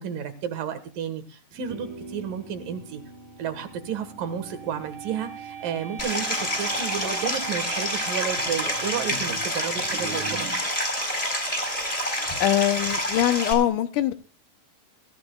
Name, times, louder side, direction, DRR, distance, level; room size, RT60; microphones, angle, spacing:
voice 1, 0.0-3.0 3.4-10.5, right 8 dB, 75° right, 3.1 m, -32 dB
sound 1, 1.5-10.6, right 5 dB, 35° right, 1.2 m, -40 dB
Stream, 6.0-13.5, equal, 10° left, 3.8 m, -28 dB
voice 2, 12.4-14.1, left 12 dB, 75° left, 2.2 m, -22 dB
23.5 x 14.5 x 2.3 m
omnidirectional pair, 3.9 m